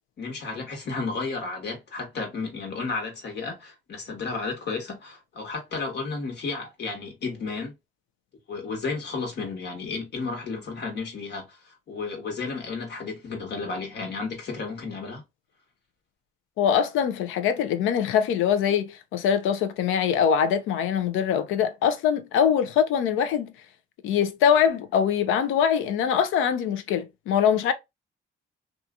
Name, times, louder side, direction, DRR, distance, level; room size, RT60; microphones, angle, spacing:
voice 1, 0.2-7.7 8.5-15.2, left 4 dB, 60° left, 1.3 m, -33 dB
voice 2, 16.6-23.5 24.0-27.7, left 8 dB, 85° left, 0.5 m, -23 dB
2.7 x 2.4 x 2.4 m
cardioid pair, 90°, 20 cm